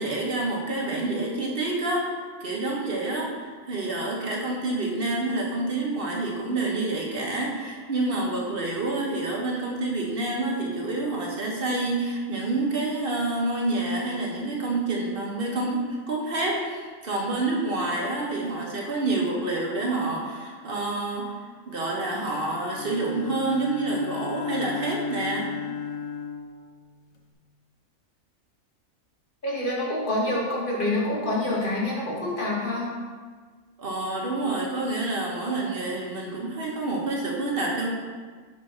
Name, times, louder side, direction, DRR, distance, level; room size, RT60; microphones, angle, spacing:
voice 1, 0.0-2.1 2.4-25.5 33.8-37.9, right 2 dB, 45° right, -2 dB, 1.3 m, -28 dB
Bowed string instrument, 22.7-27.3, left 8 dB, 70° left, 1.1 m, -35 dB
voice 2, 29.4-32.9, left 1 dB, 40° left, -4 dB, 1.7 m, -27 dB
6.0 x 4.4 x 5.6 m, 1.5 s
omnidirectional pair, 1.4 m